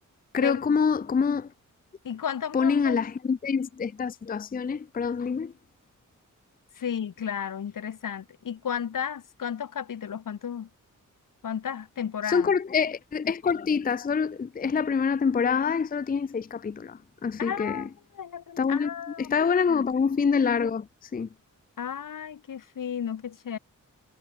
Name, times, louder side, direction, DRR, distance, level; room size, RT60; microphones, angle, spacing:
voice 1, 0.3-1.5 2.5-5.5 12.3-17.9 18.6-18.9 19.2-21.3, left 6 dB, 30° left, 0.5 m, -26 dB
voice 2, 2.0-3.0 6.8-10.7 11.4-12.5 17.4-17.9 18.2-19.3 19.7-19.8 21.8-23.6, left 8 dB, 80° left, 2.4 m, -33 dB
wide cardioid pair, 160°, 32 cm